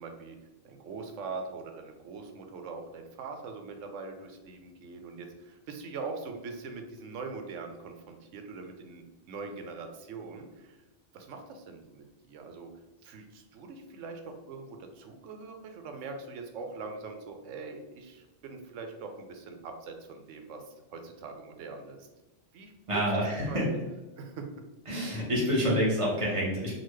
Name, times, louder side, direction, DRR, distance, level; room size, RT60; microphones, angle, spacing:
voice 1, 0.0-10.8 11.1-12.7 13.0-22.1 22.5-23.8 24.2-24.7, right 4 dB, 85° right, 5 dB, 0.9 m, -42 dB
voice 2, 22.9-23.6 24.9-26.7, equal, 30° right, -4 dB, 1.0 m, -27 dB
3.9 x 2.2 x 3.1 m, 1.1 s
omnidirectional pair, 1.2 m